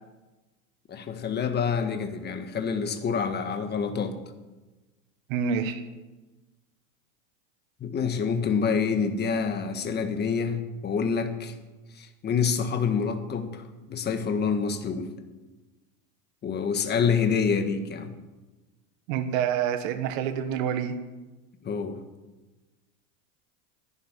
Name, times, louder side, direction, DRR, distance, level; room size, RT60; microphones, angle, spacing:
voice 1, 0.9-4.1 7.8-10.6 10.8-11.5 12.0-13.6 13.9-15.1 16.4-18.1 21.6-21.9, left 6 dB, 20° left, 7 dB, 1.6 m, -27 dB
voice 2, 5.3-5.8 19.1-20.9, right 8 dB, 60° right, 8 dB, 1.6 m, -27 dB
11.5 x 11.5 x 9.4 m, 1.2 s
supercardioid pair, 145°, 44 cm